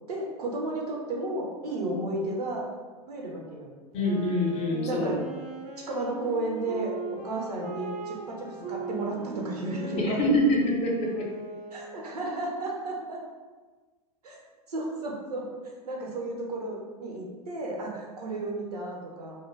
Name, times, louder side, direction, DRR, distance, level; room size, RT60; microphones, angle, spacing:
voice 1, 0.1-2.7 3.1-3.7 4.8-5.2 5.8-10.2 11.7-13.2 14.2-14.4 14.7-15.5 15.9-19.3, right 2 dB, 75° right, -2 dB, 0.7 m, -33 dB
voice 2, 3.9-5.1 10.0-11.3, left 1 dB, 35° left, -2 dB, 0.6 m, -25 dB
Wind instrument woodwind instrument, 4.0-12.3, right 3 dB, 35° right, 0.4 m, -39 dB
2.1 x 2.1 x 3.2 m, 1.3 s
figure-of-eight pair, 90°, 20 cm